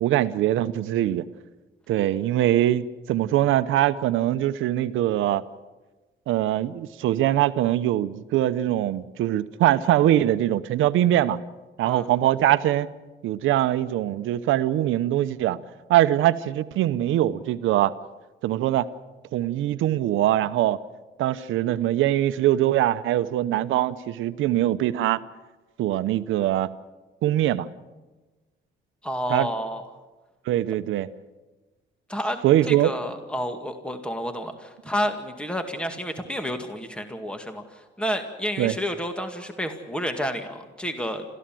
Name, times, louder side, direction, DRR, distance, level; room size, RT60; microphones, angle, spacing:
voice 1, 0.0-1.2 1.9-5.4 6.3-11.4 11.8-12.9 13.2-15.6 15.9-17.9 18.4-18.9 19.3-20.8 21.2-25.2 25.8-26.7 27.2-27.7 29.3-29.5 30.5-31.1 32.4-32.9 38.6-38.8, right 13 dB, 85° right, 13 dB, 0.8 m, -22 dB
voice 2, 29.0-29.8 32.1-32.4 32.7-41.3, equal, 5° left, 6 dB, 2.1 m, -30 dB
28.5 x 14.5 x 7.7 m, 1.2 s
cardioid pair, 90°, 20 cm